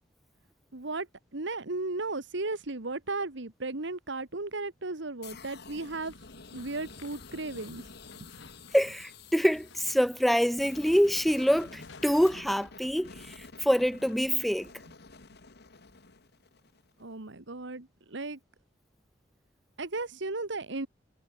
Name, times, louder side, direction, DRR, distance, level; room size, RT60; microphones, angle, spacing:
voice 1, 0.7-6.1 6.5-8.3 17.0-18.4 19.8-20.9, right 3 dB, 70° right, 1.7 m, -35 dB
sound 1, 5.2-17.0, left 4 dB, 60° left, 1.8 m, -50 dB
sound 2, 6.0-12.4, left 3 dB, 80° left, 2.7 m, -55 dB
voice 2, 8.7-14.7, equal, ahead, 0.3 m, -26 dB
head